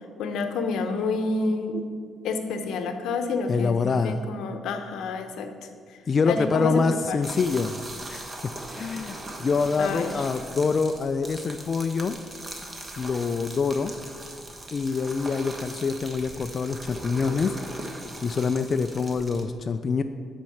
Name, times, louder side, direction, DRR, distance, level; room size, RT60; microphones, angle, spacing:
voice 1, 0.2-1.8 2.2-5.5 6.3-7.2 9.8-10.1, left 3 dB, 80° left, 7 dB, 0.8 m, -28 dB
voice 2, 3.5-4.3 6.1-7.8 8.1-8.3 8.7-12.2 13.0-13.9 14.7-17.6 18.2-20.0, left 5 dB, 45° left, 8 dB, 0.3 m, -25 dB
sound 1, 7.2-19.4, right 1 dB, 25° right, 1.3 m, -40 dB
9.2 x 4.4 x 5.9 m, 2.1 s
cardioid pair, 90°, 0 cm